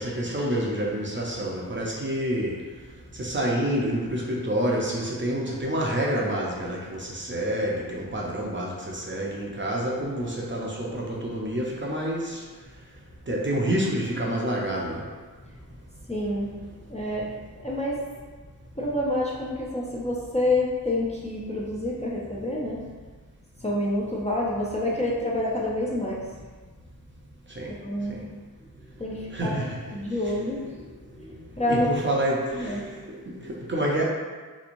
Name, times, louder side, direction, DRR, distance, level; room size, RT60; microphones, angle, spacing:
voice 1, 0.0-2.6 3.1-12.4 13.3-15.1 27.5-27.8 28.1-28.2 29.3-30.2 31.3-31.4 31.7-34.0, right 1 dB, 30° right, -3 dB, 0.5 m, -28 dB
voice 2, 16.1-18.1 18.7-22.9 23.6-26.4 27.8-28.2 28.6-28.7 29.0-29.6 29.9-31.9 32.5-32.8, left 1 dB, 20° left, -5 dB, 0.5 m, -28 dB
3.4 x 3.0 x 2.5 m, 1.4 s
wide cardioid pair, 90°, 38 cm